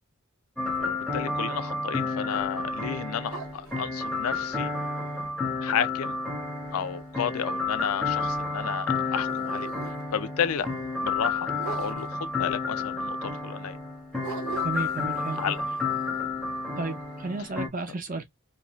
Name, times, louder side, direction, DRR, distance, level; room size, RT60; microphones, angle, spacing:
sound 1, 0.6-17.7, left 3 dB, 5° left, 0.7 m, -31 dB
voice 1, 0.8-4.7 5.6-6.2 6.7-9.7 10.1-10.7 11.0-11.5 11.8-13.8 15.3-15.6, left 8 dB, 85° left, 0.4 m, -32 dB
sound 2, 1.8-8.8 9.0-12.7 13.0-13.1 13.5-13.6 14.2-17.5, right 5 dB, 80° right, 0.8 m, -45 dB
voice 2, 14.6-15.5 16.8-18.3, right 3 dB, 40° right, 0.6 m, -33 dB
2.5 x 2.3 x 2.9 m
head